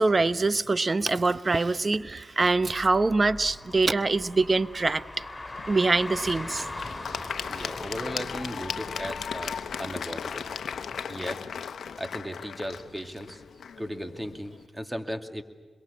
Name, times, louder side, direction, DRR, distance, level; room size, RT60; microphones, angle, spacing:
voice 1, 0.0-5.0 5.7-6.7 7.6-7.7, right 3 dB, 40° right, 15 dB, 0.9 m, -24 dB
Car, 2.5-11.0, left 2 dB, 25° left, 4.6 m, -41 dB
Applause / Crowd, 5.5-14.6, left 7 dB, 75° left, 0.9 m, -37 dB
voice 2, 7.5-10.5 11.1-11.5 12.0-13.4 13.8-15.4, equal, 10° right, 7 dB, 2.3 m, -36 dB
26.0 x 22.0 x 8.7 m, 1.3 s
supercardioid pair, 40°, 0 cm